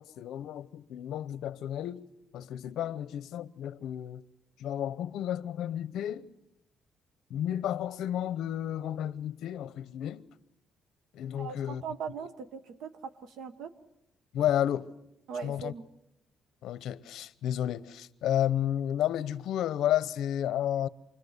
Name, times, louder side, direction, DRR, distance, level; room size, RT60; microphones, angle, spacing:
voice 1, 0.0-2.1 2.3-4.2 4.6-6.3 7.3-10.3 11.1-11.8 14.3-14.9 15.4-15.7 16.6-20.9, left 11 dB, 75° left, 0.9 m, -32 dB
voice 2, 11.4-13.7 15.3-15.9, right 6 dB, 80° right, 1.2 m, -40 dB
28.0 x 22.0 x 8.1 m
cardioid pair, 175°, 0 cm